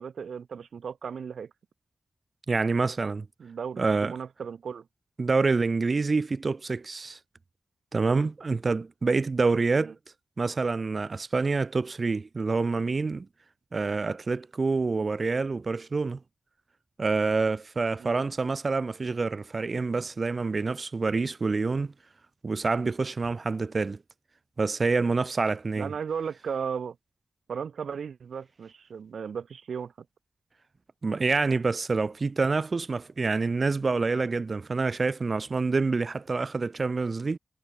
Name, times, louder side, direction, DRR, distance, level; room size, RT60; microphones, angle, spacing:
voice 1, 0.0-1.5 3.4-4.9 9.8-9.9 18.0-18.2 25.7-27.0 27.5-29.9, right 6 dB, 80° right, 1.3 m, -35 dB
voice 2, 2.5-3.3 3.8-4.1 5.2-7.2 7.9-9.9 10.4-13.3 13.7-16.2 17.0-21.9 22.4-24.0 24.6-25.9 31.0-37.4, right 4 dB, 40° right, 0.5 m, -27 dB
wide cardioid pair, 120°, 0 cm